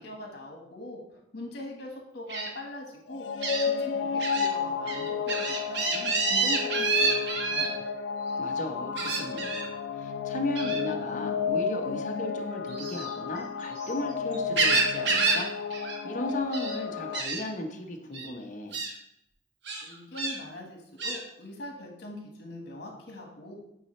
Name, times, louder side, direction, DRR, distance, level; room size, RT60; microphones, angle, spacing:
voice 1, 0.0-3.3 3.6-7.8 19.8-23.6, left 1 dB, 65° left, 1 dB, 1.5 m, -42 dB
Gull seagull, 2.3-2.5 3.4-3.6 4.2-4.5 4.9-7.7 9.0-9.7 10.6-10.8 12.7-13.9 14.3-15.5 15.7-16.0 16.3-16.8 17.1-17.4 18.1-18.3 18.7-18.9 19.7-20.4 21.0-21.2, right 3 dB, 65° right, 1.1 m, -28 dB
sound 1, 3.1-17.2, left 6 dB, 90° left, 0.4 m, -32 dB
voice 2, 8.4-9.7 10.0-15.5 16.0-18.8, left 2 dB, 45° left, 2 dB, 0.8 m, -35 dB
8.4 x 4.1 x 3.2 m, 0.82 s
head